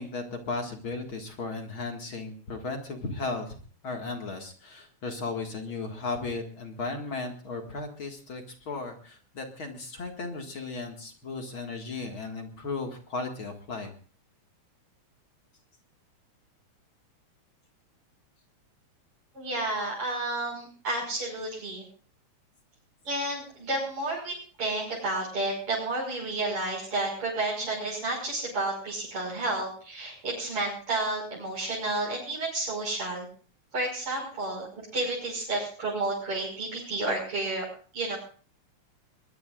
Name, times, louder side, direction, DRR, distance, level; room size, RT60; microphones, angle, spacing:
voice 1, 0.0-3.6 3.8-13.9, left 3 dB, 45° left, 3 dB, 2.6 m, -35 dB
voice 2, 19.3-21.8 23.0-33.3 33.7-34.7 34.9-37.6 37.9-38.2, right 2 dB, 45° right, -5 dB, 6.6 m, -31 dB
22.0 x 22.0 x 2.5 m, 0.42 s
omnidirectional pair, 3.4 m